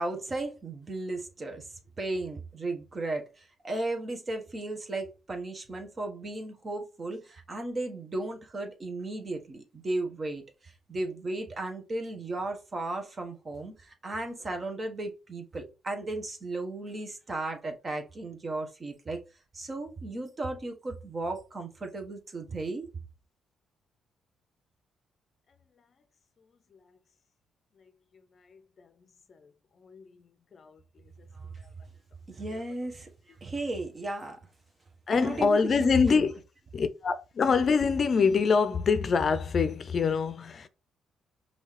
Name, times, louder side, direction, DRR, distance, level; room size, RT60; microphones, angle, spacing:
voice 1, 0.0-19.2 19.5-22.9 31.3-31.6 32.3-34.4 35.1-36.3, right 2 dB, 40° right, 1.3 m, -35 dB
voice 2, 35.1-36.3 36.7-40.7, left 5 dB, 50° left, 0.5 m, -25 dB
5.3 x 2.8 x 3.3 m
supercardioid pair, 60°, 0 cm